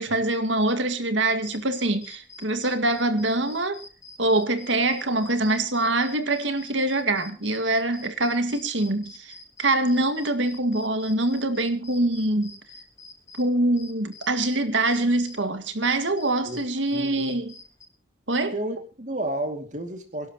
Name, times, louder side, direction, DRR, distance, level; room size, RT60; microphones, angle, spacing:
voice 1, 0.0-3.8 4.2-12.6 13.4-17.5 18.3-18.5, right 2 dB, 75° right, 2.0 m, -24 dB
sound 1, 1.3-15.4 15.8-17.9, left 3 dB, 15° left, 4.3 m, -47 dB
voice 2, 16.9-17.4 18.5-20.3, right 1 dB, 40° right, 2.5 m, -31 dB
27.0 x 12.0 x 3.0 m
head